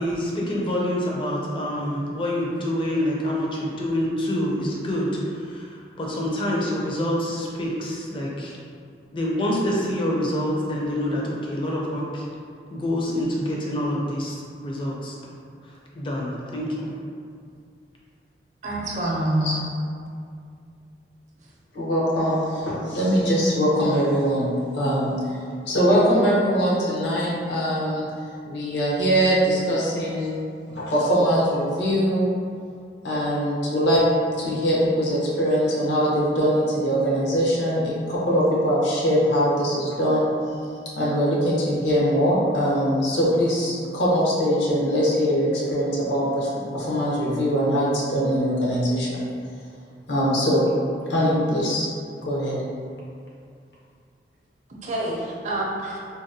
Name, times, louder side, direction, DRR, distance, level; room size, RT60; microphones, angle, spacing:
voice 1, 0.0-8.5 9.1-12.2 12.7-15.4 15.9-16.9, equal, 30° left, -4 dB, 0.4 m, -26 dB
voice 2, 18.6-19.6 54.8-56.0, right 1 dB, 45° right, -3 dB, 0.5 m, -26 dB
voice 3, 21.7-24.5 24.7-25.1 25.7-28.1 28.4-30.4 30.7-32.3 33.0-34.0 34.4-40.3 41.0-49.2 50.1-50.6 51.1-51.9 52.2-52.6, equal, 80° left, -6 dB, 0.8 m, -22 dB
3.8 x 2.1 x 2.6 m, 2.3 s
head